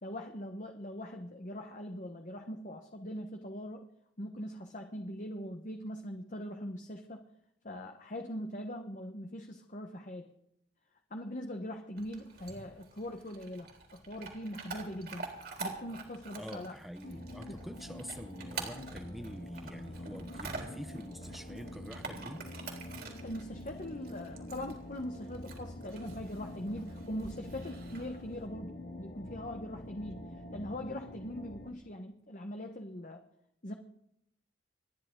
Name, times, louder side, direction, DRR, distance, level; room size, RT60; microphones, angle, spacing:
voice 1, 0.0-3.9 4.2-7.2 7.6-10.3 11.1-15.3 15.6-16.7 17.5-17.6 23.0-30.2 30.5-33.2 33.6-33.7, equal, 45° left, 4 dB, 1.2 m, -41 dB
Chewing mastication / Dog, 12.0-28.5, right 4 dB, 60° right, 3.6 m, -47 dB
voice 2, 16.4-22.4, equal, ahead, 8 dB, 0.6 m, -45 dB
sound 1, 17.0-31.7, left 1 dB, 70° left, 1.7 m, -46 dB
28.0 x 10.5 x 3.9 m, 0.79 s
head